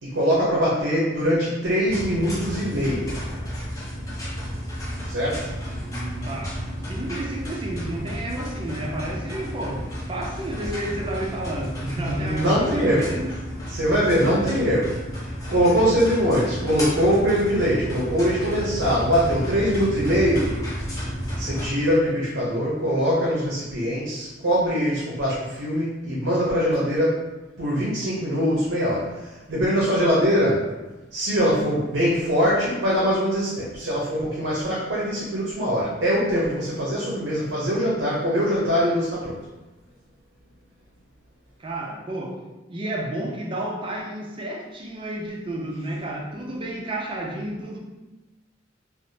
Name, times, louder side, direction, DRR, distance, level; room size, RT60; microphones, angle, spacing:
voice 1, 0.0-3.1 5.1-5.5 12.0-13.2 13.7-15.0 15.5-20.6 21.4-27.3 27.6-30.7 31.1-39.4, equal, 80° right, -6 dB, 0.6 m, -22 dB
sound 1, 1.9-21.7, equal, 20° left, 0.6 m, -32 dB
voice 2, 5.8-13.4 41.6-47.8, right 1 dB, 25° right, -1 dB, 0.4 m, -31 dB
3.3 x 2.0 x 2.7 m, 1.1 s
head